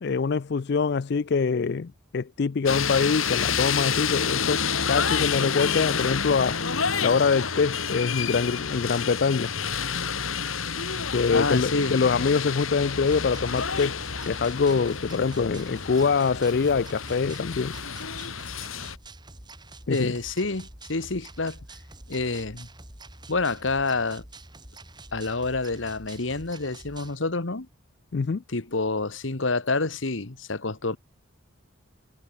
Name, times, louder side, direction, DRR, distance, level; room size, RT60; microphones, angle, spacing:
voice 1, 0.0-6.6 7.0-9.5 11.1-14.0 14.2-17.8 19.9-20.1 28.1-28.4, left 5 dB, 55° left, 0.4 m, -24 dB
sound 1, 2.7-19.0, left 6 dB, 85° left, 3.0 m, -29 dB
voice 2, 11.3-11.9 19.9-21.6 22.1-22.7 23.3-24.2 25.1-27.7 28.5-31.0, left 3 dB, 70° left, 1.5 m, -28 dB
sound 2, 13.1-27.2, right 2 dB, 20° right, 7.1 m, -46 dB
head